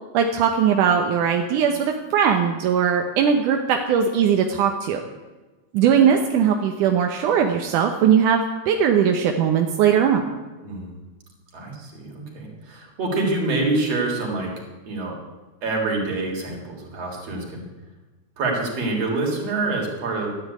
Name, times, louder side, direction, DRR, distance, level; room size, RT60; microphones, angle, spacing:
voice 1, 0.1-5.0 5.7-10.2, right 7 dB, 85° right, 4 dB, 2.5 m, -19 dB
voice 2, 11.5-14.5 14.9-15.2 15.6-17.7 18.4-20.3, right 2 dB, 55° right, 0 dB, 4.6 m, -26 dB
13.5 x 10.5 x 9.4 m, 1.2 s
omnidirectional pair, 3.5 m